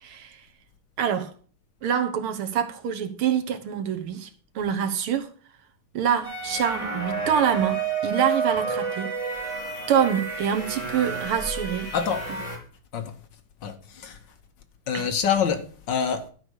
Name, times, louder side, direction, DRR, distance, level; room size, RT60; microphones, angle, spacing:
voice 1, 0.0-0.4 1.0-1.3 1.8-4.3 4.6-5.3 5.9-9.1 9.9-11.9 14.9-15.1, right 8 dB, 80° right, 2.0 m, -25 dB
sound 1, 6.2-12.6, right 4 dB, 15° right, 3.6 m, -30 dB
voice 2, 11.9-12.2 12.9-13.2 13.6-14.2 14.9-16.3, left 7 dB, 60° left, 1.6 m, -26 dB
11.5 x 5.2 x 6.4 m
omnidirectional pair, 2.4 m